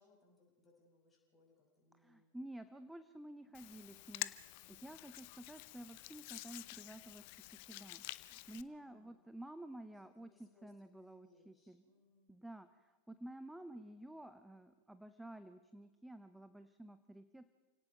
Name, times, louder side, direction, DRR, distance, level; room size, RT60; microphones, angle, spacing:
voice 1, 0.0-2.4 3.4-4.1 4.3-5.0 8.7-9.3 10.2-12.4, left 3 dB, 15° left, -2 dB, 6.2 m, -71 dB
voice 2, 2.0-7.2 7.7-11.8 12.3-17.4, right 1 dB, 5° right, 11 dB, 0.8 m, -52 dB
Hands, 3.5-8.6, left 19 dB, 45° left, 0.7 m, -49 dB
29.5 x 17.5 x 5.3 m, 1.2 s
figure-of-eight pair, 90°, 0 cm